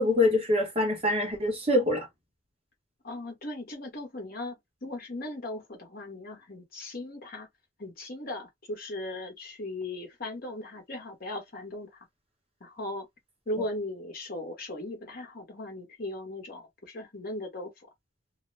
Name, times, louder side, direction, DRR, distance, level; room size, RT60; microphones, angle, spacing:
voice 1, 0.0-2.1, left 1 dB, 30° right, 1.1 m, -24 dB
voice 2, 3.0-7.5 7.8-12.1 12.6-13.1 13.5-17.7, left 1 dB, 45° left, 1.0 m, -38 dB
2.3 x 2.1 x 3.1 m
head